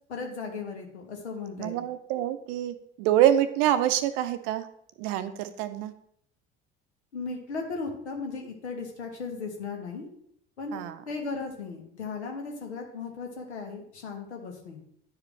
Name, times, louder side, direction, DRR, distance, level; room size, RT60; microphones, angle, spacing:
voice 1, 0.1-1.8 7.1-10.1 10.6-10.8 11.1-14.8, left 4 dB, 75° left, 2 dB, 1.3 m, -36 dB
voice 2, 1.6-4.7 5.0-5.9 10.7-11.0, right 11 dB, 55° right, 11 dB, 0.6 m, -26 dB
10.0 x 4.9 x 3.2 m, 0.69 s
figure-of-eight pair, 60°, 34 cm